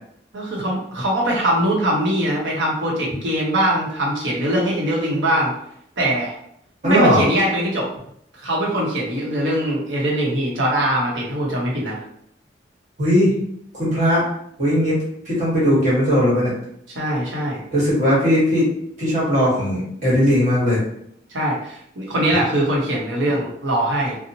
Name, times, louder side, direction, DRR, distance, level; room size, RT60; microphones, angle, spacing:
voice 1, 0.3-5.5 6.0-6.3 6.8-7.9 8.4-12.0 16.9-17.6 21.3-24.2, right 1 dB, 90° right, -3 dB, 0.8 m, -22 dB
voice 2, 6.8-7.3 13.0-13.3 13.7-14.2 14.6-15.0 15.2-16.5 17.7-18.7 19.0-20.8, equal, 40° right, -6 dB, 1.2 m, -18 dB
2.8 x 2.0 x 2.7 m, 0.71 s
head